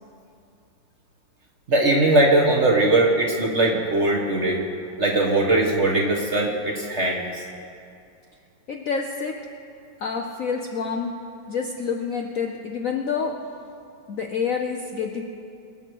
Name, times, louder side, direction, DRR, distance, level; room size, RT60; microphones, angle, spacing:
voice 1, 1.7-4.6 5.0-7.2, right 2 dB, 40° right, 0 dB, 1.2 m, -20 dB
voice 2, 8.7-9.4 10.0-11.2 11.5-13.4 14.1-15.2, left 5 dB, 90° left, 2 dB, 0.7 m, -28 dB
24.0 x 8.0 x 4.6 m, 2.5 s
omnidirectional pair, 2.4 m